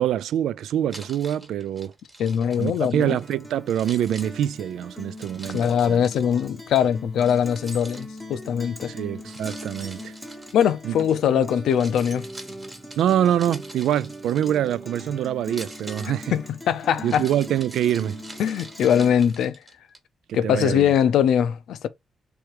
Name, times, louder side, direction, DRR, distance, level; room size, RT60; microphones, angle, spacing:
voice 1, 0.0-1.9 2.6-6.0 8.9-10.1 10.8-11.0 11.3-11.4 13.0-16.3 17.0-18.2 20.3-20.9, right 10 dB, 80° right, 0.3 m, -25 dB
Keys jangling, 0.9-3.3 3.7-6.5 7.2-8.4 9.3-11.2 11.6-15.0 15.4-20.0, right 2 dB, 20° right, 1.3 m, -44 dB
voice 2, 2.2-3.2 5.5-8.9 10.5-12.2 16.3-17.3 18.4-19.6 20.3-21.9, left 9 dB, 75° left, 0.5 m, -22 dB
Guitar, 3.2-19.2, equal, 5° left, 0.8 m, -41 dB
3.4 x 3.1 x 4.6 m
cardioid pair, 165°, 0 cm